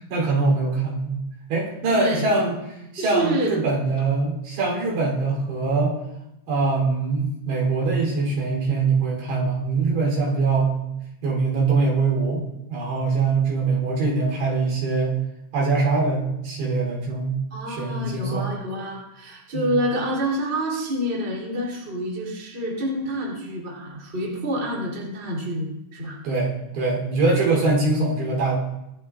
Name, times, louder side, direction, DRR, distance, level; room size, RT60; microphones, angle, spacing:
voice 1, 0.1-1.2 1.5-5.9 6.5-10.8 11.2-12.4 12.7-15.2 15.5-17.4 17.7-18.5 19.5-19.8 26.2-28.6, right 3 dB, 65° right, -3 dB, 5.7 m, -23 dB
voice 2, 1.9-2.2 3.0-3.5 17.5-26.2, equal, 15° right, -4 dB, 3.0 m, -28 dB
25.0 x 8.6 x 2.6 m, 0.89 s
omnidirectional pair, 5.4 m